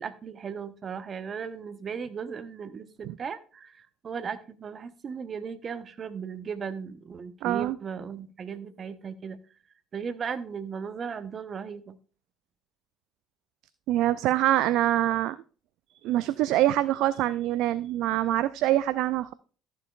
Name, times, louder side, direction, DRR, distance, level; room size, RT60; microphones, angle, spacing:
voice 1, 0.0-9.4 9.9-12.0, right 6 dB, 45° right, 11 dB, 1.1 m, -37 dB
voice 2, 7.4-7.8 13.9-15.4 16.0-19.3, right 14 dB, 65° right, 16 dB, 0.3 m, -25 dB
13.5 x 7.5 x 2.4 m, 0.39 s
hypercardioid pair, 55°, 0 cm